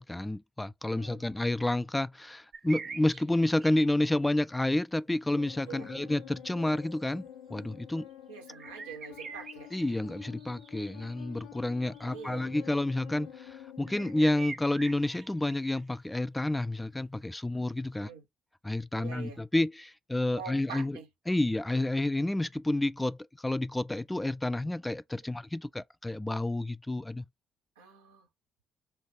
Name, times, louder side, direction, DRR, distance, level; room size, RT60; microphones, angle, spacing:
voice 1, 0.0-7.2 7.5-8.1 9.7-18.1 18.6-21.0 21.3-27.2, left 1 dB, 10° left, 0.3 m, -30 dB
voice 2, 0.8-1.2 5.7-5.9 8.3-9.7 12.0-12.4 18.0-18.2 19.0-19.4 20.4-21.1 27.8-28.3, right 6 dB, 80° right, 0.8 m, -45 dB
sound 1, 2.5-3.9 6.2-6.3 8.5-12.5 12.9-13.0 13.9-15.8, right 5 dB, 45° right, 0.7 m, -45 dB
sound 2, 5.3-14.4, left 11 dB, 80° left, 0.7 m, -49 dB
3.3 x 2.3 x 4.2 m
figure-of-eight pair, 45°, 0 cm